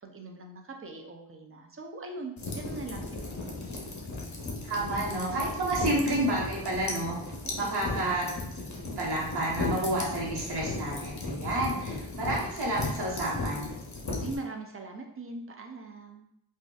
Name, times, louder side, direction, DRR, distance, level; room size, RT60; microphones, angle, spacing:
voice 1, 0.0-3.7 4.0-4.1 7.4-8.3 14.2-16.3, right 3 dB, 30° right, 3 dB, 0.4 m, -42 dB
sound 1, 2.4-14.4, left 2 dB, 40° left, 0.8 m, -36 dB
voice 2, 4.7-7.2 7.5-8.2 9.0-13.7, right 1 dB, 60° right, -4 dB, 1.2 m, -30 dB
3.8 x 2.4 x 2.4 m, 0.77 s
wide cardioid pair, 105°, 44 cm